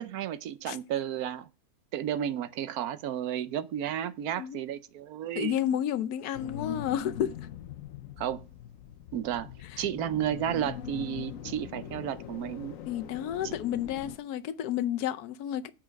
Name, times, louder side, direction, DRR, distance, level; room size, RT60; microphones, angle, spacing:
voice 1, 0.0-1.5 1.9-5.6 8.2-8.4 9.1-9.5 9.8-12.8 13.4-13.5, right 10 dB, 75° right, 1.2 m, -32 dB
voice 2, 5.3-7.3 9.7-9.8 12.9-15.7, left 10 dB, 85° left, 1.2 m, -31 dB
sound 1, 6.3-14.2, left 10 dB, 65° left, 1.1 m, -42 dB
8.6 x 6.0 x 5.2 m
omnidirectional pair, 1.6 m